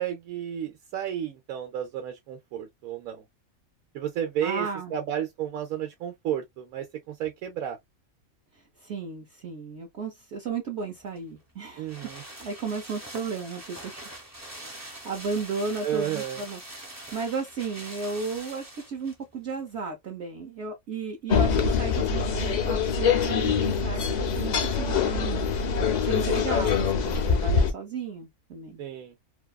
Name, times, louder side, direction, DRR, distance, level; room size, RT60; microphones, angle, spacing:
voice 1, 0.0-3.2 3.9-7.8 11.8-12.2 15.8-16.4 28.8-29.1, right 10 dB, 80° right, 1.1 m, -32 dB
voice 2, 4.4-4.9 8.8-11.9 12.4-14.0 14.5-16.6 16.9-25.4 26.0-28.8, right 4 dB, 60° right, 0.9 m, -34 dB
sound 1, 11.1-19.2 19.5-19.6, right 1 dB, 15° right, 0.7 m, -43 dB
sound 2, 21.3-27.7, left 6 dB, 75° left, 0.4 m, -24 dB
2.7 x 2.3 x 2.2 m
omnidirectional pair, 1.5 m